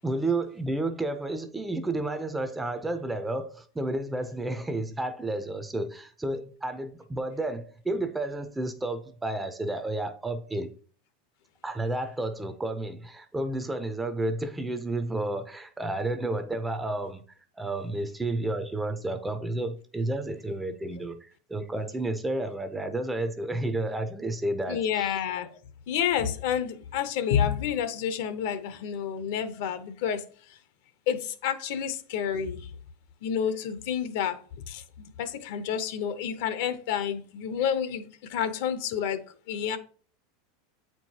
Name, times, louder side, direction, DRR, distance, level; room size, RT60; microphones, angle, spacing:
voice 1, 0.0-10.7 11.6-17.2 17.5-25.2, right 2 dB, 5° right, 0.5 m, -31 dB
voice 2, 24.7-25.6 25.9-30.6 31.1-32.7 33.2-39.8, left 8 dB, 60° left, 0.7 m, -29 dB
8.0 x 4.5 x 2.8 m
supercardioid pair, 160°, 0 cm